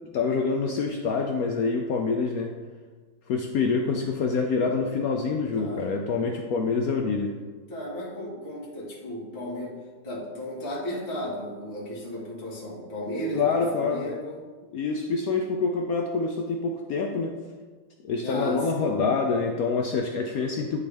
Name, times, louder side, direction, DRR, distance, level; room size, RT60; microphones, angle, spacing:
voice 1, 0.1-2.5 3.3-7.3 13.3-14.1 14.7-17.3 18.0-20.8, left 4 dB, 75° left, 2 dB, 0.8 m, -26 dB
voice 2, 5.5-5.9 7.7-9.8 10.0-14.4 18.2-19.0, equal, 30° left, -7 dB, 1.8 m, -34 dB
10.5 x 3.6 x 3.4 m, 1.4 s
omnidirectional pair, 2.1 m